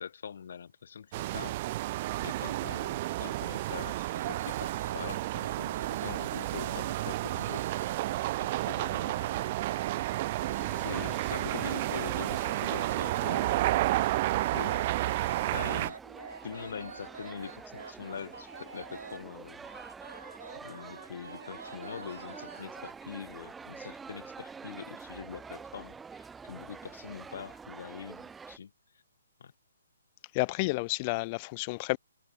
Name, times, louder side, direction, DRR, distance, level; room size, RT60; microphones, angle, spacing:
voice 1, 0.0-1.9 2.2-7.7 8.1-9.5 10.7-13.5 14.5-15.0 15.5-16.0 16.4-19.7 20.6-28.7 29.4-29.5, left 7 dB, 60° left, 1.3 m, -43 dB
sound 1, 1.1-15.9, right 17 dB, 35° right, 1.0 m, -31 dB
sound 2, 4.0-19.2 19.6-22.9, right 4 dB, 75° right, 1.7 m, -47 dB
sound 3, 10.6-28.6, right 5 dB, 10° right, 4.1 m, -47 dB
voice 2, 30.3-32.0, left 26 dB, 30° left, 0.5 m, -30 dB
figure-of-eight pair, 140°, 0 cm